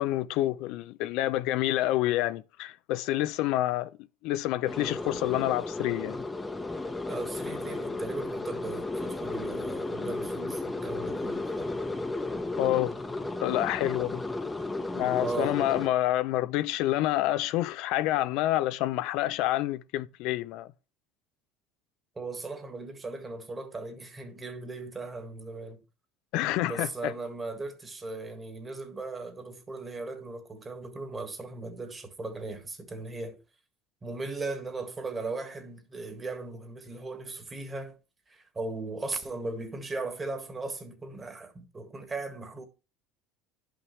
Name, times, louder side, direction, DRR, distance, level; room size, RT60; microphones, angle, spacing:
voice 1, 0.0-3.9 4.2-6.2 12.6-13.0 13.4-14.2 14.9-20.7 26.3-27.1, left 15 dB, 70° left, 0.5 m, -28 dB
sound 1, 4.7-15.9, left 2 dB, 10° left, 0.9 m, -34 dB
voice 2, 7.1-11.7 14.0-14.1 15.2-15.7 22.2-25.8 26.6-33.4 34.0-38.0 38.3-42.7, right 3 dB, 20° right, 1.7 m, -37 dB
11.0 x 5.8 x 3.2 m
supercardioid pair, 100°, 0 cm